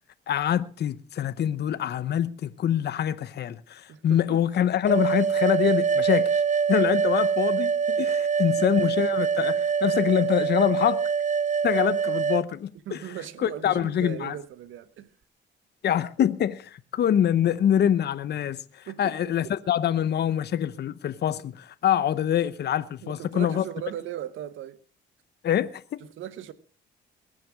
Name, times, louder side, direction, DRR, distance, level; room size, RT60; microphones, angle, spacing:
voice 1, 0.3-6.4 6.7-11.0 11.6-13.0 13.4-14.3 15.8-23.6 25.4-26.0, left 10 dB, 55° left, 0.8 m, -25 dB
voice 2, 3.9-4.4 8.4-8.7 9.0-9.1 12.9-15.1 18.9-19.5 23.0-24.8 26.2-26.5, right 11 dB, 80° right, 1.1 m, -38 dB
sound 1, 4.9-12.5, right 6 dB, 40° right, 0.6 m, -24 dB
21.5 x 7.6 x 6.2 m
cardioid pair, 90°, 20 cm